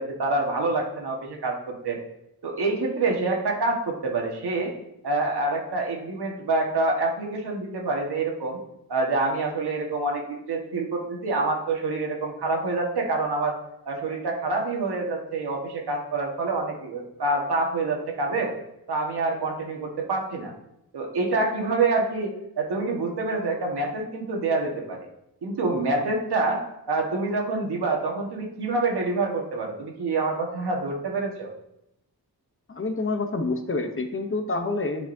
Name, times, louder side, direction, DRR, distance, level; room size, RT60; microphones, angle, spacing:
voice 1, 0.0-2.0 2.4-4.7 5.0-8.6 8.9-13.5 13.8-18.5 18.9-20.5 20.9-25.1 25.4-31.5, right 3 dB, 80° right, 0 dB, 1.6 m, -27 dB
voice 2, 32.7-35.1, left 3 dB, 35° left, 6 dB, 0.8 m, -28 dB
10.5 x 5.2 x 2.7 m, 0.84 s
wide cardioid pair, 110°, 39 cm